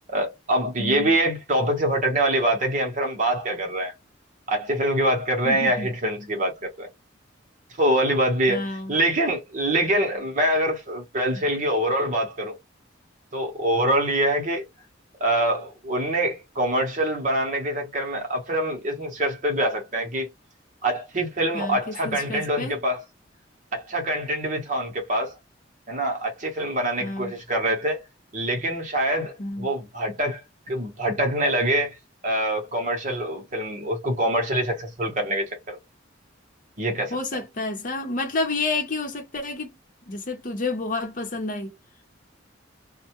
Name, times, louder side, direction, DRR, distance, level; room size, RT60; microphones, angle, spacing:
voice 1, 0.1-3.9 4.5-6.9 7.7-12.6 13.3-14.6 15.2-20.3 20.8-23.0 23.7-25.4 25.9-28.0 28.3-30.4 30.7-31.9 32.2-35.8 36.8-37.2, right 1 dB, 40° right, 0.8 m, -25 dB
voice 2, 0.8-1.1 5.5-5.9 8.5-9.0 21.5-22.8 27.0-27.3 29.4-29.7 37.1-39.7 40.1-41.7, left 2 dB, 45° left, 0.7 m, -30 dB
2.2 x 2.1 x 2.9 m
head